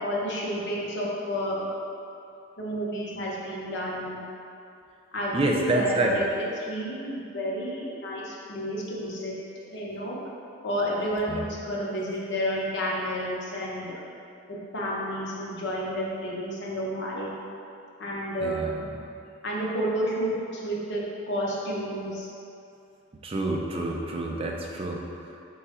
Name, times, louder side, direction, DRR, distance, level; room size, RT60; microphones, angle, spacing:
voice 1, 0.0-1.6 2.6-4.2 5.1-9.3 9.7-10.2 10.6-13.9 14.5-17.3 18.0-18.8 19.4-22.3, equal, 60° left, -4 dB, 0.8 m, -30 dB
voice 2, 5.3-6.2 11.3-11.5 18.4-18.9 23.2-25.0, right 2 dB, 30° right, 0 dB, 0.4 m, -27 dB
4.9 x 2.3 x 4.2 m, 2.6 s
head